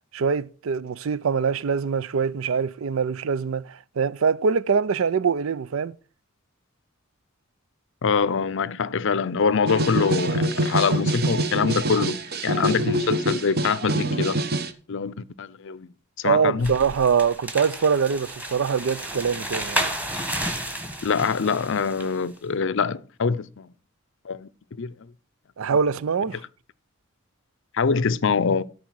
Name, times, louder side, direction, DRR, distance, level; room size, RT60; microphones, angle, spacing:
voice 1, 0.1-5.9 16.2-19.9 25.6-26.4, right 6 dB, 70° right, 0.4 m, -23 dB
voice 2, 8.0-14.4 14.9-15.9 16.2-16.7 21.0-23.7 24.2-24.5 24.8-24.9 27.7-28.6, left 5 dB, 60° left, 0.6 m, -24 dB
sound 1, 9.7-14.7, right 1 dB, 45° right, 1.0 m, -25 dB
sound 2, 16.6-22.2, right 1 dB, 5° right, 1.4 m, -32 dB
13.0 x 4.9 x 6.3 m
head